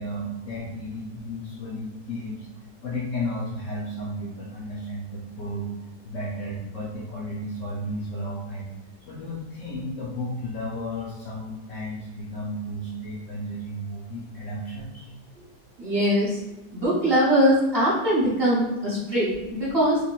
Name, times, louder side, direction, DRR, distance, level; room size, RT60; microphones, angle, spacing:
voice 1, 0.0-2.5 2.8-5.7 6.0-8.7 9.0-15.1, equal, 60° left, -4 dB, 0.8 m, -33 dB
voice 2, 15.8-16.4 16.7-20.0, equal, 35° right, -9 dB, 1.5 m, -22 dB
4.1 x 2.9 x 2.3 m, 1.1 s
omnidirectional pair, 1.9 m